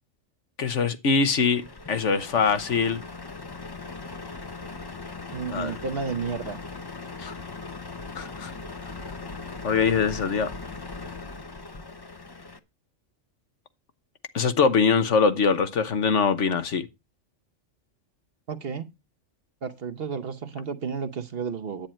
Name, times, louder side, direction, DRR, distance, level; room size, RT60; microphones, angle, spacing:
voice 1, 0.6-1.6 1.9-3.0 5.5-5.7 7.2-7.4 8.2-8.5 9.6-10.5 14.3-16.8, left 5 dB, 65° left, 1.4 m, -23 dB
Truck, 1.4-12.6, left 3 dB, 25° left, 0.6 m, -39 dB
voice 2, 5.3-6.6 18.5-18.9 19.6-21.9, right 5 dB, 50° right, 1.0 m, -32 dB
10.5 x 8.9 x 4.3 m
omnidirectional pair, 1.3 m